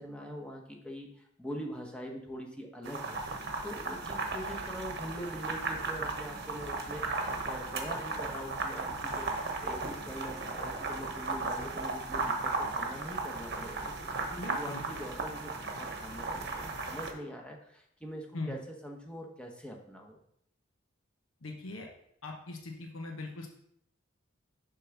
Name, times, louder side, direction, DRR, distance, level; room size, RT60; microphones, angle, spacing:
voice 1, 0.0-3.2 3.6-20.2, equal, 5° left, 1 dB, 0.9 m, -43 dB
sound 1, 2.8-17.1, right 3 dB, 55° right, 0.9 m, -36 dB
voice 2, 14.4-14.9 18.3-18.6 21.4-21.9 22.2-23.5, left 2 dB, 85° left, 1 dB, 0.9 m, -40 dB
6.8 x 3.8 x 5.8 m, 0.72 s
head